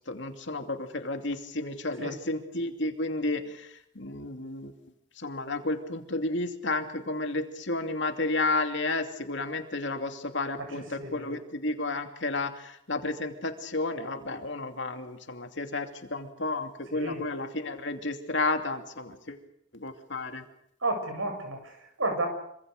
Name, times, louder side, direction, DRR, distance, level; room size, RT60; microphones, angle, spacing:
voice 1, 0.1-4.7 5.2-19.4 19.7-20.4, left 2 dB, 65° left, 5 dB, 2.7 m, -32 dB
voice 2, 10.7-11.4 16.9-17.2 20.8-22.3, right 2 dB, 90° right, 5 dB, 7.6 m, -32 dB
26.5 x 25.0 x 6.7 m, 0.74 s
head